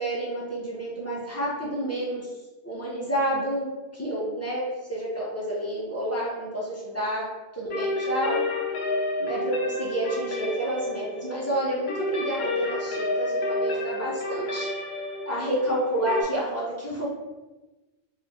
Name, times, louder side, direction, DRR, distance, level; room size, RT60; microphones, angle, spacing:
voice 1, 0.0-2.3 2.6-3.7 3.9-7.3 7.5-8.4 9.2-14.7 15.2-17.1, right 1 dB, 15° left, -7 dB, 0.6 m, -29 dB
sound 1, 7.7-16.2, left 2 dB, 65° left, 0.9 m, -30 dB
3.1 x 2.6 x 3.3 m, 1.1 s
omnidirectional pair, 1.2 m